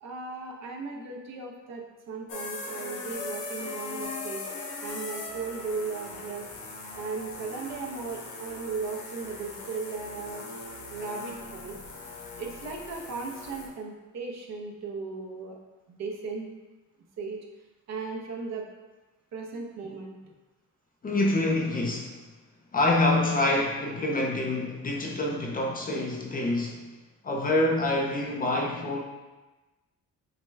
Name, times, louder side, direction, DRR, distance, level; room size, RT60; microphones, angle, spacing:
voice 1, 0.0-4.5 4.8-6.5 6.9-10.5 10.9-11.8 12.4-15.6 15.9-16.5 17.2-17.4 17.9-18.7 19.3-20.3, right 4 dB, 55° right, 0 dB, 0.7 m, -36 dB
sound 1, 2.3-13.7, left 3 dB, 70° left, 0.8 m, -40 dB
voice 2, 21.0-22.1 22.7-26.8 27.2-29.0, left 2 dB, 30° left, 0 dB, 0.5 m, -26 dB
6.0 x 2.2 x 3.3 m, 1.1 s
cardioid pair, 140°, 31 cm